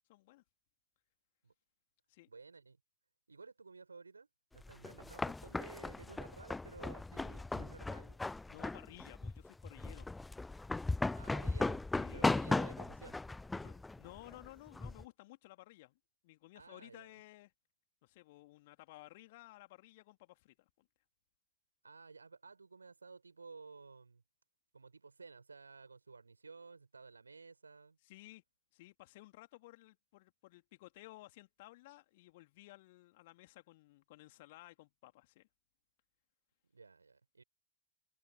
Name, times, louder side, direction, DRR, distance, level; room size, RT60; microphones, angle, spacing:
voice 1, 0.1-0.4 2.1-2.3 8.5-10.1 11.9-12.4 13.5-16.0 16.2-17.5 18.0-20.9 28.0-28.4 28.7-35.5, left 19 dB, 50° left, 2.9 m, -56 dB
voice 2, 2.3-2.8 3.3-4.3 4.5-8.2 11.1-11.8 12.1-13.2 16.5-17.1 21.8-24.2 24.7-28.0 36.7-37.4, right 4 dB, 75° right, 7.1 m, -54 dB
sound 1, 4.6-15.0, left 2 dB, 10° left, 0.3 m, -37 dB
figure-of-eight pair, 90°, 0 cm